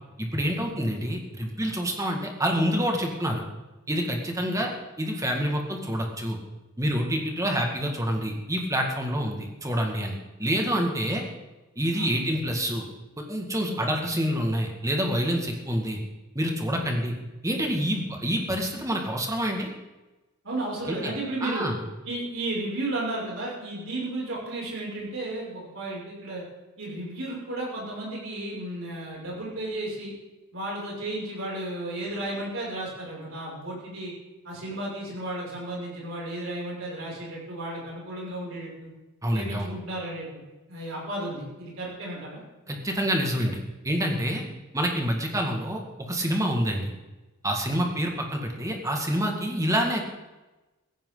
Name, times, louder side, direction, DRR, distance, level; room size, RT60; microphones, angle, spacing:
voice 1, 0.2-3.4 3.9-4.7 5.0-6.4 6.8-11.2 11.8-12.9 13.2-16.0 16.4-17.1 17.4-19.7 20.9-21.1 21.4-21.8 39.2-39.7 42.7-43.6 43.8-44.4 44.7-46.9 47.4-50.0, equal, 15° right, 2 dB, 2.0 m, -27 dB
voice 2, 20.4-21.7 22.0-26.4 26.8-30.1 30.5-34.1 34.4-38.9 39.3-40.4 40.7-42.4, right 1 dB, 65° right, -4 dB, 6.6 m, -33 dB
16.5 x 15.5 x 4.0 m, 1.1 s
head